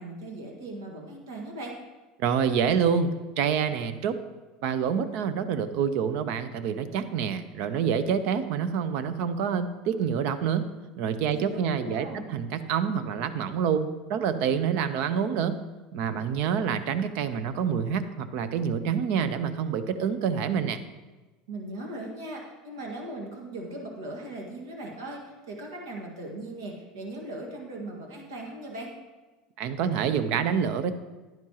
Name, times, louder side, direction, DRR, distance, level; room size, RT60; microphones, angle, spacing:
voice 1, 0.0-1.8 11.3-11.4 11.7-12.4 21.5-28.9, right 1 dB, 85° right, 0 dB, 1.7 m, -38 dB
voice 2, 2.2-4.2 4.6-10.6 11.0-15.5 15.9-20.8 29.6-30.9, right 7 dB, 65° right, 12 dB, 0.7 m, -27 dB
10.5 x 10.5 x 2.9 m, 1.2 s
hypercardioid pair, 95°, 2 cm